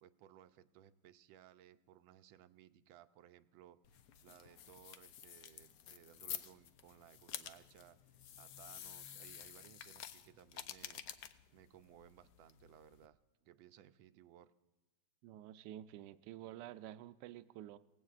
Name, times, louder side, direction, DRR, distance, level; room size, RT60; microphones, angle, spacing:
voice 1, 0.0-3.8 4.2-8.0 8.4-11.0 11.5-14.5, right 11 dB, 90° right, 11 dB, 1.4 m, -61 dB
sound 1, 3.8-13.1, left 10 dB, 70° left, 1.1 m, -51 dB
voice 2, 15.2-17.8, right 12 dB, 75° right, 11 dB, 1.0 m, -50 dB
19.0 x 16.0 x 2.4 m, 1.2 s
omnidirectional pair, 2.1 m